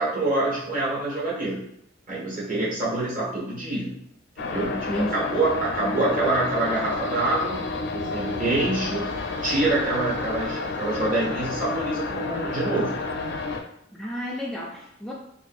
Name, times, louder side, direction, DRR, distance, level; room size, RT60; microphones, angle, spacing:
voice 1, 0.0-1.6 2.1-4.0 4.4-7.6 7.9-9.1 9.4-13.0, right 2 dB, 45° right, -6 dB, 1.4 m, -26 dB
sound 1, 4.4-13.6, left 3 dB, 60° left, 0.5 m, -30 dB
voice 2, 4.7-5.2 13.9-15.1, left 1 dB, ahead, -4 dB, 0.3 m, -31 dB
2.6 x 2.5 x 4.2 m, 0.75 s
head